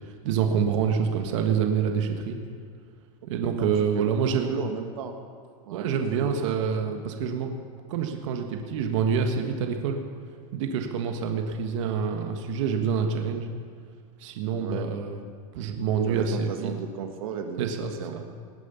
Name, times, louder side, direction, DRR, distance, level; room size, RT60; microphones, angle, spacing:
voice 1, 0.1-2.4 3.3-4.5 5.7-7.5 7.9-10.0 10.5-13.5 14.2-15.2 15.5-16.7 17.6-18.2, right 6 dB, 60° right, 4 dB, 1.5 m, -27 dB
voice 2, 3.9-5.2 5.7-5.9 6.2-6.3 6.6-6.7 14.5-14.9 16.0-17.7 18.0-18.2, right 7 dB, 75° right, 5 dB, 1.5 m, -35 dB
19.0 x 9.5 x 7.1 m, 2.1 s
supercardioid pair, 165°, 18 cm